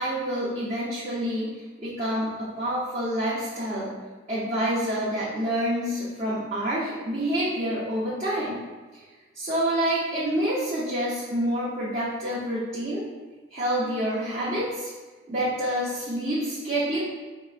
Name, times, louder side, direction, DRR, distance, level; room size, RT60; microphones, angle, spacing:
voice 1, 0.0-3.9 4.3-8.6 9.3-13.0 13.5-14.9 15.3-17.0, right 1 dB, 35° right, -9 dB, 0.7 m, -27 dB
4.5 x 3.0 x 2.4 m, 1.3 s
head